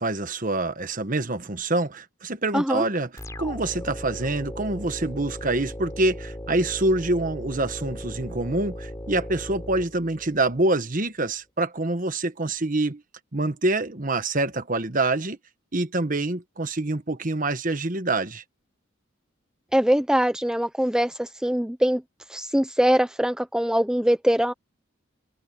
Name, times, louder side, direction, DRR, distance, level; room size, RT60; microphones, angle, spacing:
voice 1, 0.0-13.0 13.3-15.4 15.7-18.4, right 2 dB, 40° right, 1.3 m, -26 dB
voice 2, 2.5-2.8 19.7-22.0 22.3-24.5, equal, 5° right, 0.7 m, -22 dB
sound 1, 3.2-10.7, equal, 15° left, 5.1 m, -37 dB
head